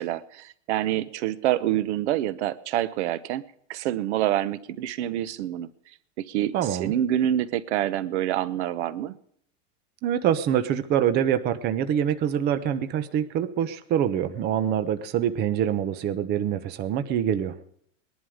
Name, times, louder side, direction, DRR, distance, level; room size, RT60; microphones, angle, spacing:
voice 1, 0.0-3.4 3.7-5.7 6.2-6.5 6.8-9.1, right 12 dB, 65° right, 17 dB, 1.0 m, -26 dB
voice 2, 6.5-6.9 10.0-17.7, right 9 dB, 25° right, 11 dB, 0.9 m, -25 dB
20.0 x 11.5 x 5.0 m, 0.67 s
supercardioid pair, 160°, 37 cm